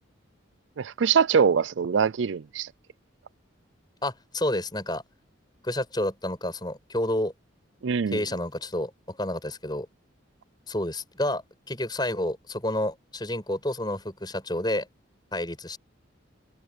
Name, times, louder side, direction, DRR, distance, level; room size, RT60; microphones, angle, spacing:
voice 1, 0.8-2.7 7.8-8.2, right 6 dB, 70° right, 0.4 m, -23 dB
voice 2, 4.0-5.0 5.6-7.3 8.1-9.9 10.7-11.4 11.7-14.9 15.3-15.8, left 1 dB, 20° left, 6.2 m, -29 dB
head